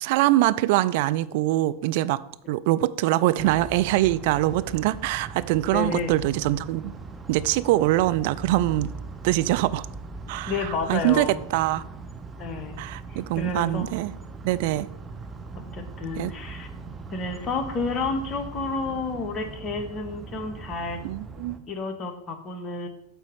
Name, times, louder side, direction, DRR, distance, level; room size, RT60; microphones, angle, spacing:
voice 1, 0.0-6.9 7.3-8.9 9.2-9.8 10.3-11.3 11.5-11.8 12.8-14.1 14.4-14.9 16.2-16.3 21.0-21.6, right 16 dB, 50° right, 14 dB, 0.3 m, -23 dB
sound 1, 3.4-21.6, right 4 dB, 15° right, 0.7 m, -40 dB
voice 2, 5.7-6.1 10.5-11.4 12.4-12.8 13.1-13.8 15.7-16.7 17.1-21.0 21.7-22.9, left 3 dB, 30° left, 7 dB, 1.1 m, -30 dB
7.9 x 4.1 x 5.4 m, 0.74 s
figure-of-eight pair, 90°, 0 cm